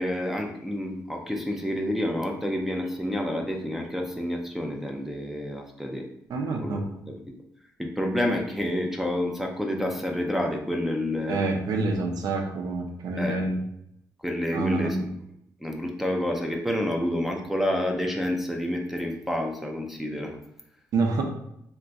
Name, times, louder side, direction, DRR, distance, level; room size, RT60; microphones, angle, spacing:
voice 1, 0.0-6.1 6.5-6.8 7.1-7.3 7.8-11.5 13.2-13.4 14.2-15.1 15.6-20.4, left 1 dB, 5° right, 0 dB, 0.3 m, -29 dB
voice 2, 6.3-6.8 11.3-13.6 14.5-15.1 20.9-21.2, right 3 dB, 65° right, 3 dB, 0.6 m, -27 dB
2.4 x 2.2 x 3.9 m, 0.76 s
cardioid pair, 125°, 7 cm